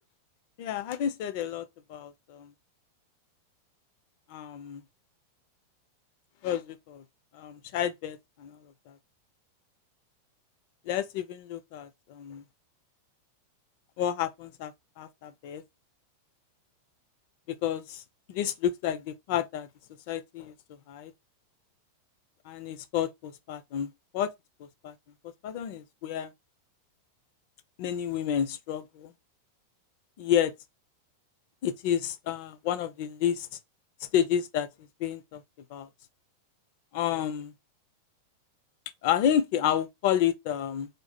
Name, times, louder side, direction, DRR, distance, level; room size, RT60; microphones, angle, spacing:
voice 1, 0.6-2.5 4.3-4.8 6.4-7.0 7.3-8.6 8.9-9.0 10.9-12.4 14.0-15.6 17.5-18.0 18.3-19.7 20.1-20.5 20.9-21.1 22.5-24.3 24.6-24.9 25.4-26.3 27.8-29.1 30.2-30.5 31.6-33.5 34.1-34.7 35.0-35.4 35.7-35.9 36.9-37.5 39.0-40.9, left 10 dB, 45° left, 0.5 m, -30 dB
3.2 x 2.4 x 4.0 m
figure-of-eight pair, 90°, 0 cm